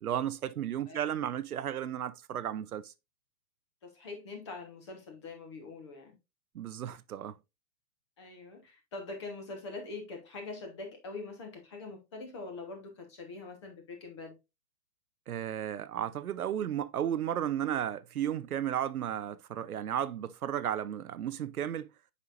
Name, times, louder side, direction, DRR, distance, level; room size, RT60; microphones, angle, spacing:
voice 1, 0.0-2.9 6.5-7.4 15.3-21.9, right 10 dB, 65° right, 0.7 m, -34 dB
voice 2, 3.8-6.1 8.2-14.4, left 3 dB, 15° left, 1.1 m, -43 dB
8.0 x 5.6 x 2.5 m
hypercardioid pair, 175°, 48 cm